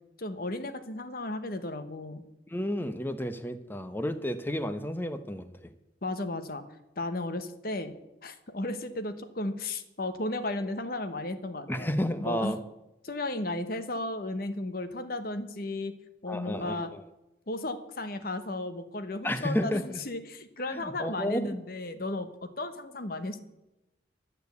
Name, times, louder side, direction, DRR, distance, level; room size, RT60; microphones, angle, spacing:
voice 1, 0.2-2.2 6.0-6.6 7.0-7.9 8.2-11.9 12.2-12.5 13.0-16.0 16.2-16.9 17.5-23.4, left 2 dB, 50° left, 10 dB, 1.0 m, -34 dB
voice 2, 2.5-5.7 11.7-12.6 16.3-17.0 19.2-20.0 20.7-21.6, equal, 10° left, 10 dB, 0.7 m, -32 dB
12.0 x 6.9 x 8.1 m, 0.95 s
head